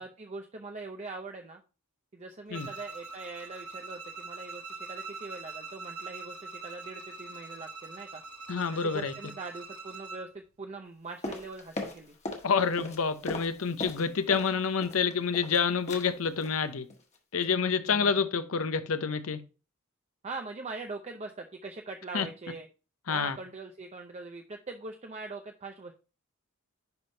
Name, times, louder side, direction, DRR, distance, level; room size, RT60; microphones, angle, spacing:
voice 1, 0.0-1.6 2.1-8.2 8.7-12.1 17.7-18.3 20.2-22.7 23.1-25.9, right 3 dB, 30° right, 0.6 m, -42 dB
Bowed string instrument, 2.5-10.3, right 3 dB, 85° right, 1.1 m, -43 dB
voice 2, 8.5-9.1 12.4-16.9 17.3-19.4 22.1-22.3 23.1-23.4, left 6 dB, 70° left, 0.7 m, -28 dB
sound 1, 11.2-12.5 12.7-14.5 14.8-15.6 15.9-16.1 16.4-16.6 16.9-17.2 17.4-17.5, left 2 dB, 30° left, 1.3 m, -38 dB
10.5 x 3.5 x 2.7 m
head